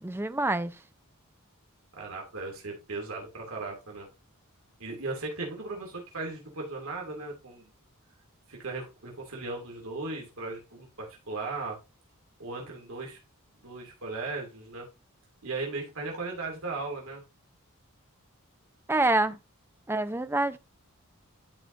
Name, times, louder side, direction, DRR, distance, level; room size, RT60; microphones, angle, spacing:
voice 1, 0.0-0.8 18.9-19.4 19.9-20.6, right 2 dB, 10° right, 0.5 m, -26 dB
voice 2, 1.9-4.1 4.8-7.7 8.5-11.8 12.4-13.2 13.6-14.9 15.4-17.2, right 3 dB, 65° right, 2.5 m, -37 dB
12.0 x 4.9 x 2.5 m
head